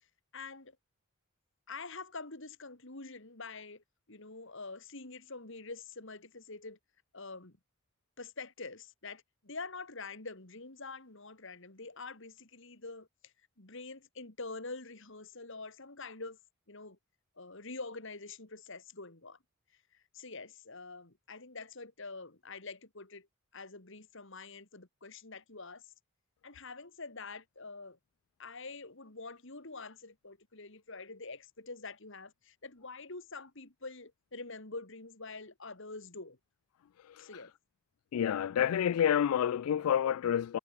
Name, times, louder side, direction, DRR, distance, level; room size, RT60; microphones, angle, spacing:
voice 1, 0.3-0.8 1.7-6.8 7.1-7.6 8.2-16.4 16.7-17.0 17.4-19.4 19.9-23.3 23.5-25.9 26.4-28.0 28.4-36.4 37.2-37.5, left 3 dB, 60° left, 2.7 m, -46 dB
voice 2, 38.1-40.6, left 9 dB, 80° left, 0.3 m, -28 dB
head